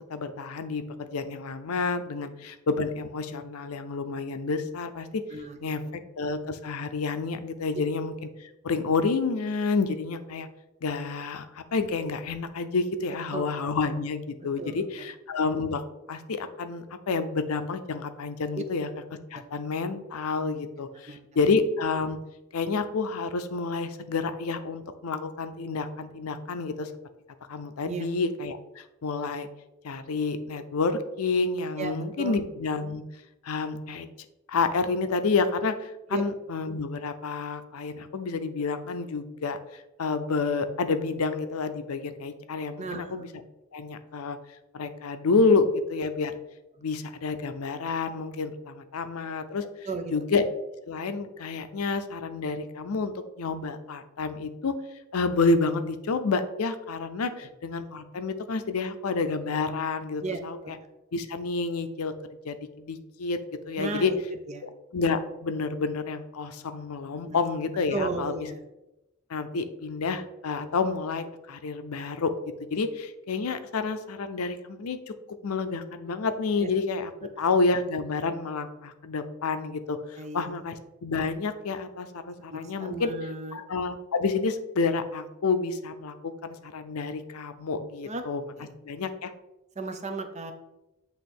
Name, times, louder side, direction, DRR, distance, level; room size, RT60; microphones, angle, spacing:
voice 1, 0.1-5.2 5.6-5.8 6.2-10.5 10.8-15.8 16.1-18.9 19.3-22.2 22.5-26.9 27.5-29.5 29.8-33.0 33.4-34.1 34.5-39.6 40.0-43.3 43.7-44.4 44.7-46.4 46.8-49.6 50.1-50.4 50.9-54.8 55.1-60.8 61.1-62.1 62.4-63.4 63.7-64.1 64.6-68.5 69.3-72.3 72.7-75.1 75.4-77.1 77.4-83.1 83.5-88.4 88.8-89.3, left 4 dB, 80° left, 10 dB, 0.5 m, -29 dB
voice 2, 5.3-6.0 13.3-13.5 14.6-15.1 19.3-19.4 21.1-21.2 27.8-28.1 31.8-32.4 36.1-36.2 42.8-43.2 49.9-50.1 60.2-60.7 63.8-64.2 64.5-64.6 67.2-67.4 67.9-68.6 76.6-76.7 80.2-80.5 82.5-83.6 88.0-88.2 88.5-88.7 89.8-90.5, right 3 dB, 30° right, 6 dB, 0.7 m, -35 dB
8.1 x 3.0 x 4.3 m, 0.95 s
head